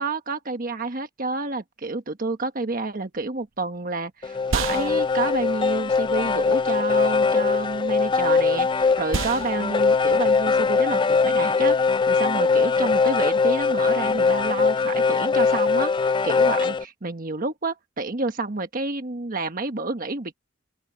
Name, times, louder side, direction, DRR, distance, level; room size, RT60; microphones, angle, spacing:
voice 1, 0.0-11.8 12.1-20.3, right 3 dB, 45° right, 1.3 m, -29 dB
sound 1, 3.1-12.8, right 4 dB, 85° right, 0.8 m, -36 dB
sound 2, 4.2-16.8, left 4 dB, 25° left, 0.4 m, -21 dB
open air
head